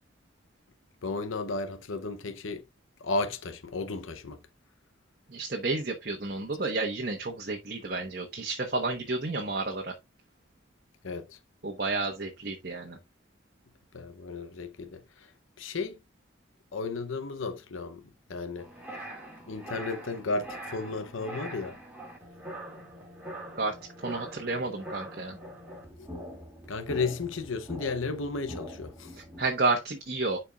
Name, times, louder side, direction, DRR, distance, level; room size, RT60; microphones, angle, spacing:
voice 1, 1.0-2.6 3.0-4.4 11.0-11.4 13.9-15.3 15.6-16.0 16.7-18.0 18.3-18.7 19.5-21.8 26.0-26.1 26.7-29.1, left 3 dB, 85° left, 0.8 m, -34 dB
voice 2, 5.3-9.9 11.6-13.0 23.5-23.7 24.0-25.4 29.1-30.4, right 3 dB, 50° right, 1.1 m, -31 dB
sound 1, 18.6-29.5, right 1 dB, 10° right, 2.3 m, -43 dB
11.0 x 4.5 x 2.4 m
head